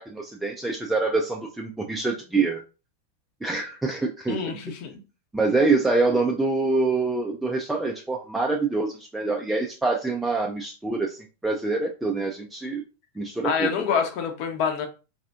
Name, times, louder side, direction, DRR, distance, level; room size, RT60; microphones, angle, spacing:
voice 1, 0.0-2.6 3.4-4.4 5.3-12.8 13.2-14.0, right 3 dB, 5° right, 0.4 m, -25 dB
voice 2, 4.3-4.9 13.4-14.9, left 6 dB, 45° left, 0.8 m, -26 dB
4.1 x 2.4 x 2.3 m
figure-of-eight pair, 90°, 0 cm